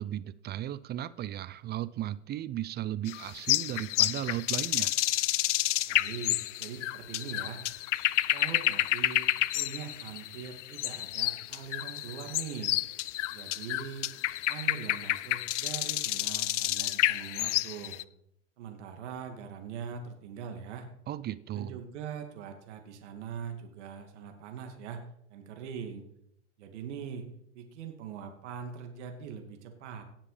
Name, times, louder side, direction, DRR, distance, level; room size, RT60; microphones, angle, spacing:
voice 1, 0.0-4.9 21.1-21.8, right 12 dB, 25° right, 0.6 m, -35 dB
sound 1, 3.1-18.0, left 16 dB, 75° left, 0.6 m, -30 dB
voice 2, 5.9-7.6 8.3-12.8 13.3-14.1 14.5-18.0 18.6-20.9 21.5-25.0 25.3-26.0 26.6-27.3 27.5-30.0, right 7 dB, 70° right, 2.6 m, -42 dB
18.0 x 7.5 x 5.1 m
hypercardioid pair, 105°, 36 cm